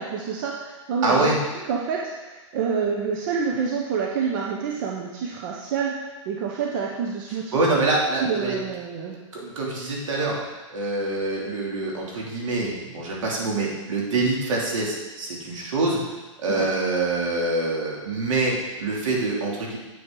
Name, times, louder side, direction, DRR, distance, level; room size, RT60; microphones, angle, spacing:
voice 1, 0.0-1.3 1.7-6.0 6.2-7.6 8.2-9.2 16.5-16.7, right 6 dB, 40° right, -1 dB, 1.0 m, -27 dB
voice 2, 1.0-1.4 7.5-8.6 9.3-10.3 10.7-16.0 16.4-19.8, right 2 dB, 70° right, -3 dB, 3.0 m, -25 dB
8.5 x 8.2 x 3.9 m, 1.2 s
hypercardioid pair, 160°, 17 cm